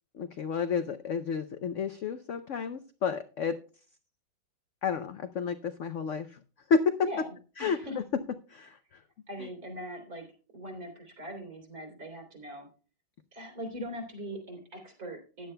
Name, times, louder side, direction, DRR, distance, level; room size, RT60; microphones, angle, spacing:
voice 1, 0.1-3.6 4.8-6.4 6.7-6.9 7.6-7.8 8.5-8.8 9.4-9.5, left 5 dB, 75° left, 9 dB, 0.6 m, -31 dB
voice 2, 7.0-7.3 7.6-8.0 9.3-10.3 10.5-12.7 13.3-15.5, equal, 50° right, 1 dB, 3.8 m, -41 dB
15.5 x 10.0 x 2.2 m, 0.36 s
omnidirectional pair, 2.1 m